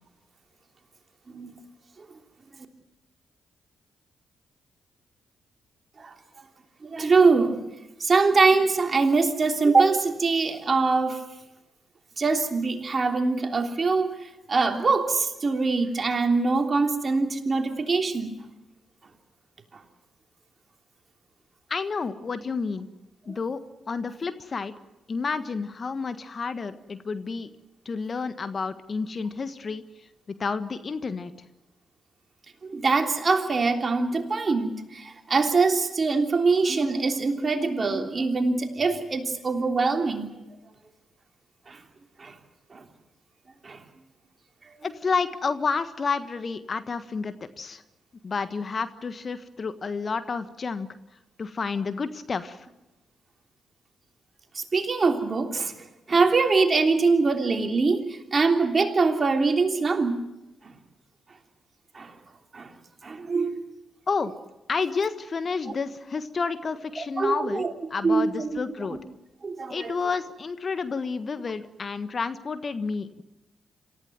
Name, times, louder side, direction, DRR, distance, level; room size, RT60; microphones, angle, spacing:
voice 1, 6.8-7.6 8.0-11.2 12.2-18.4 23.3-23.4 32.7-40.3 41.7-41.8 42.2-42.3 42.7-42.8 43.6-43.8 54.5-55.7 56.1-60.2 61.9-62.1 62.5-62.7 63.0-63.6 67.0-67.7 68.0-68.6 69.4-69.9, right 4 dB, 40° right, 4 dB, 3.3 m, -23 dB
voice 2, 21.7-22.9 23.3-23.6 23.9-24.7 25.1-27.5 27.8-29.8 30.4-31.3 44.8-47.8 48.2-50.9 51.4-52.7 64.1-64.3 64.7-69.0 69.7-73.2, left 4 dB, 45° left, 11 dB, 1.5 m, -30 dB
27.5 x 15.0 x 9.4 m, 0.98 s
hypercardioid pair, 40°, 0 cm